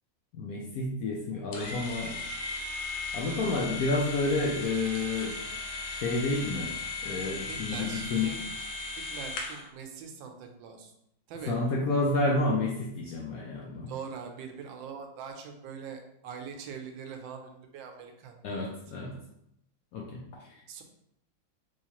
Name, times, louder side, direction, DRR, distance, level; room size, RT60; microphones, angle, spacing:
voice 1, 0.3-2.1 3.1-5.4 5.9-6.7 7.0-8.3 11.5-13.9 18.4-19.2 19.9-20.2 20.5-20.6, left 2 dB, 70° left, -2 dB, 0.8 m, -30 dB
sound 1, 1.5-9.7, left 3 dB, 85° left, 1.4 m, -37 dB
voice 2, 7.2-8.6 9.1-10.9 11.3-11.6 13.9-18.8 20.7-20.8, right 6 dB, 90° right, 4 dB, 1.3 m, -43 dB
3.5 x 3.1 x 2.9 m, 0.77 s
omnidirectional pair, 2.0 m